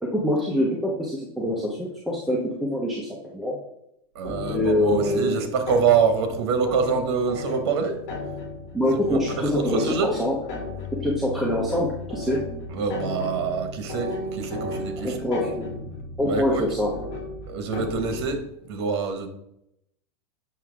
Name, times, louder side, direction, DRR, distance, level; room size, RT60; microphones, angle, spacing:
voice 1, 0.0-3.6 4.5-5.4 8.7-10.4 11.0-12.4 15.0-15.5 16.2-16.9, left 1 dB, ahead, -3 dB, 0.8 m, -25 dB
voice 2, 4.1-8.0 8.9-9.2 9.5-10.1 12.7-15.2 16.2-16.6 17.5-18.4 18.7-19.3, right 5 dB, 60° right, 7 dB, 1.5 m, -25 dB
sound 1, 4.2-18.4, left 2 dB, 45° left, 3.0 m, -35 dB
7.5 x 6.0 x 3.6 m, 0.79 s
supercardioid pair, 165°, 15 cm